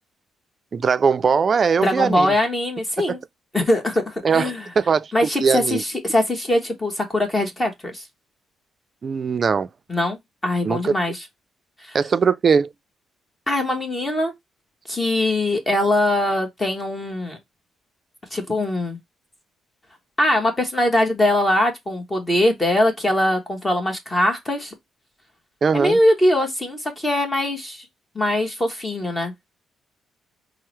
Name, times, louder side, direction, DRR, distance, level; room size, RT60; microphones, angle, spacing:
voice 1, 0.7-2.3 3.0-3.2 4.2-5.1 5.4-5.8 9.0-9.7 10.6-10.9 11.9-12.7 25.6-26.0, right 6 dB, 45° right, 0.3 m, -20 dB
voice 2, 1.8-3.2 3.5-4.7 5.1-8.0 9.9-11.2 11.8-12.0 13.5-14.3 14.9-17.4 18.3-19.0 20.2-24.7 25.7-27.8 28.1-29.3, left 1 dB, 20° left, 1.0 m, -22 dB
5.6 x 2.0 x 3.0 m
cardioid pair, 90°, 0 cm